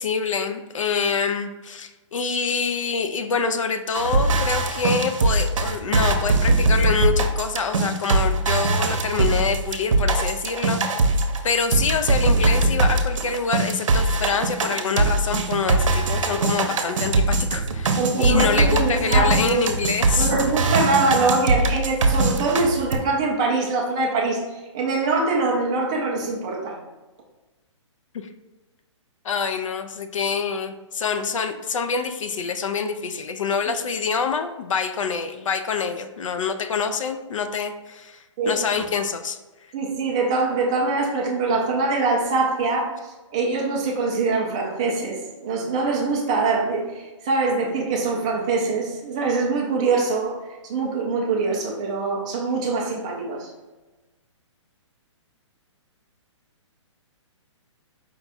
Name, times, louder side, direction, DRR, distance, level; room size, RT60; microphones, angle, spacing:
voice 1, 0.0-11.0 11.4-20.3 28.1-28.3 29.2-39.4, left 5 dB, 80° left, 8 dB, 0.5 m, -26 dB
sound 1, 3.9-11.4 11.7-23.0, right 2 dB, 85° right, 0.7 m, -21 dB
voice 2, 18.0-19.6 20.2-24.4 24.7-26.8 38.4-38.6 39.7-42.9 43.3-50.4 50.7-53.5, right 3 dB, 10° right, -2 dB, 0.3 m, -23 dB
5.1 x 2.3 x 4.0 m, 1.2 s
hypercardioid pair, 170°, 16 cm